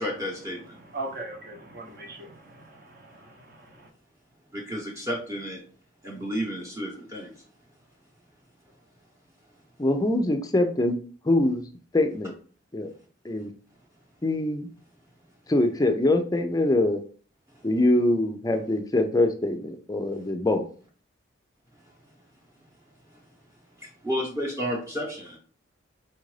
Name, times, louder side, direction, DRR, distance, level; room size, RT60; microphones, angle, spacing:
voice 1, 0.0-0.7 4.5-5.6 6.0-7.3 23.8-25.4, equal, 15° right, -3 dB, 0.8 m, -31 dB
voice 2, 0.9-3.9, right 2 dB, 50° right, 2 dB, 0.8 m, -40 dB
voice 3, 9.8-11.0 11.2-11.7 11.9-12.3 12.7-12.9 13.2-13.5 14.2-14.7 15.5-17.0 17.6-20.6, left 1 dB, 20° left, 6 dB, 0.4 m, -23 dB
4.3 x 2.5 x 3.2 m, 0.42 s
head